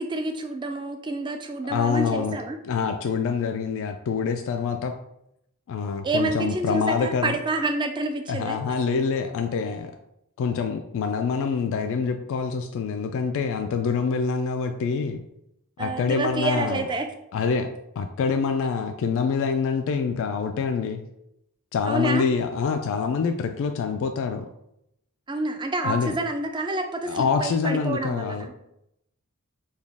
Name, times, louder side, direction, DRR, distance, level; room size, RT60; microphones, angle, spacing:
voice 1, 0.0-2.6 6.0-8.6 15.8-17.1 21.8-22.3 25.3-28.5, right 2 dB, 20° right, 5 dB, 0.4 m, -28 dB
voice 2, 1.6-2.4 2.6-4.9 5.7-7.3 8.3-9.9 10.4-15.2 15.8-16.8 17.3-17.7 18.0-21.0 21.7-24.5 25.8-26.1 27.1-28.6, left 5 dB, 60° left, 5 dB, 0.3 m, -26 dB
4.0 x 2.3 x 3.4 m, 0.79 s
head